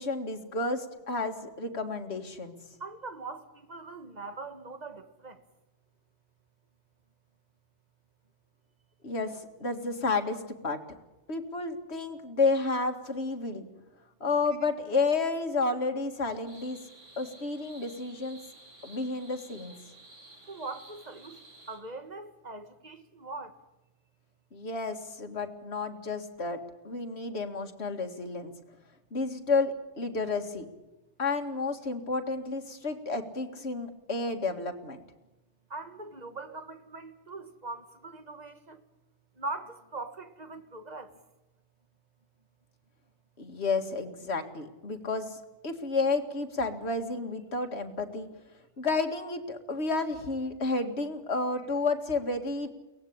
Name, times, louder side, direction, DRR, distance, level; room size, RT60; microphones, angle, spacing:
voice 1, 0.0-2.6 9.0-10.8 11.3-13.6 14.2-16.8 17.2-18.4 18.8-19.7 24.5-26.6 26.8-28.5 29.1-30.7 31.2-35.0 43.4-48.3 48.8-52.7, left 3 dB, 60° left, 2.2 m, -31 dB
voice 2, 2.8-5.4 20.5-21.4 21.7-23.5 35.7-38.8 39.4-41.1, right 3 dB, 35° right, 1.8 m, -41 dB
sound 1, 16.5-21.8, right 2 dB, 90° right, 7.5 m, -53 dB
23.5 x 18.0 x 8.7 m
omnidirectional pair, 1.2 m